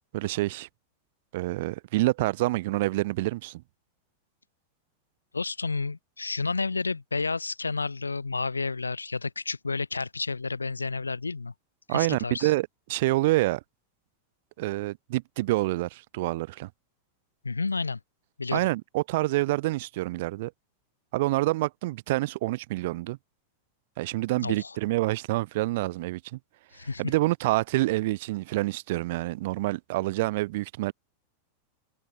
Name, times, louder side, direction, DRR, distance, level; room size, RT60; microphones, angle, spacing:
voice 1, 0.1-0.7 1.3-3.6 11.9-13.6 14.6-16.7 18.5-20.5 21.1-23.2 24.0-26.4 27.0-30.9, right 19 dB, 50° right, 0.9 m, -27 dB
voice 2, 5.3-11.5 11.9-12.5 17.4-18.0 18.4-18.7 24.4-24.8 26.7-27.0, left 4 dB, 80° left, 0.7 m, -31 dB
figure-of-eight pair, 90°, 0 cm